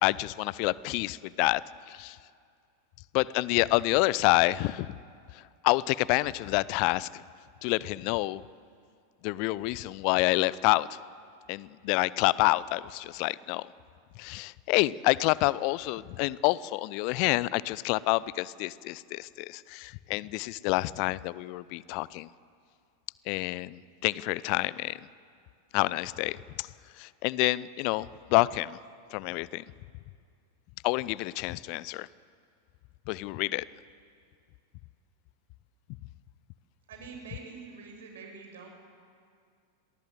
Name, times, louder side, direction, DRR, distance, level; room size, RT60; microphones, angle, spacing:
voice 1, 0.0-1.6 1.9-2.2 3.1-4.9 5.6-7.2 7.6-8.4 9.2-11.0 11.5-13.7 14.2-22.3 23.3-25.0 25.7-26.7 27.0-28.8 29.1-29.6 30.8-32.1 33.1-33.7, left 20 dB, 45° left, 21 dB, 0.6 m, -28 dB
voice 2, 36.9-38.7, right 5 dB, 60° right, 3 dB, 6.5 m, -45 dB
29.0 x 22.5 x 7.9 m, 2.3 s
figure-of-eight pair, 90°, 0 cm